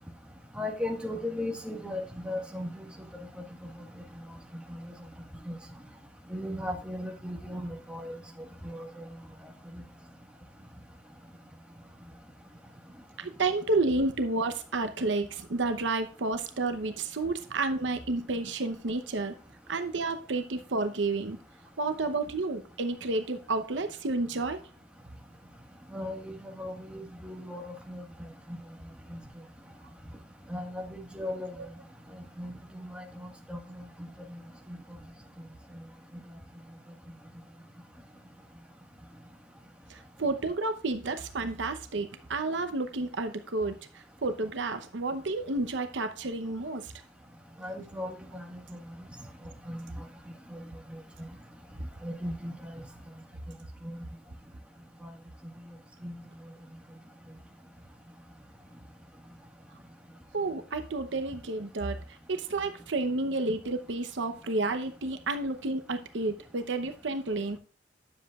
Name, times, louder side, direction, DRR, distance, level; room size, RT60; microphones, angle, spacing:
voice 1, 0.6-2.8 5.5-5.6 6.3-8.1 8.6-9.1 25.9-26.3 26.6-27.6 27.9-28.0 30.5-31.5 32.4-32.5 32.9-33.0 33.5-33.6 47.6-48.6 49.7-49.8 50.5-50.6 52.0-52.7 56.0-56.1, left 1 dB, 5° right, 2 dB, 1.5 m, -36 dB
voice 2, 13.2-19.4 19.7-21.4 21.8-24.6 31.6-31.7 39.9-46.9 60.3-67.6, right 3 dB, 70° right, 8 dB, 0.8 m, -31 dB
9.8 x 7.4 x 2.4 m, 0.38 s
head